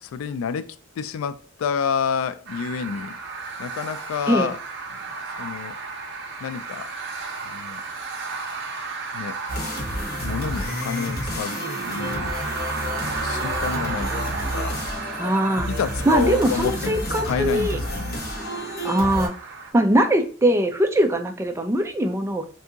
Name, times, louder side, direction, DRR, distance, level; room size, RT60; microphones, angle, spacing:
voice 1, 0.0-3.2 3.6-4.6 4.9-5.0 5.4-5.8 6.4-6.9 7.4-7.8 9.1-9.7 10.2-11.6 11.9-12.3 12.9-14.8 15.6-18.1, left 6 dB, 80° left, 0.3 m, -29 dB
sound 1, 2.5-19.7, right 4 dB, 55° right, 0.7 m, -33 dB
sound 2, 9.5-19.3, equal, 45° left, 0.9 m, -30 dB
voice 2, 15.2-15.7 16.1-17.8 18.8-19.3 19.7-22.5, right 1 dB, 15° right, 0.3 m, -21 dB
2.7 x 2.7 x 3.5 m
head